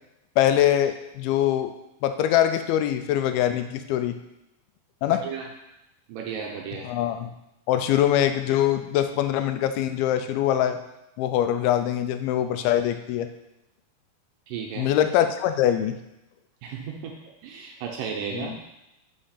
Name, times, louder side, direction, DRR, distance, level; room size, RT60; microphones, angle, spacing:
voice 1, 0.4-1.7 2.0-4.2 5.0-5.2 6.8-7.3 7.7-10.8 11.2-13.3 14.8-16.0 18.3-18.6, left 11 dB, 85° left, 9 dB, 2.4 m, -23 dB
voice 2, 5.1-5.5 6.1-6.9 14.5-14.9 16.6-17.2 17.4-18.6, right 6 dB, 80° right, 0 dB, 2.1 m, -34 dB
5.1 x 5.1 x 5.6 m, 0.90 s
omnidirectional pair, 4.3 m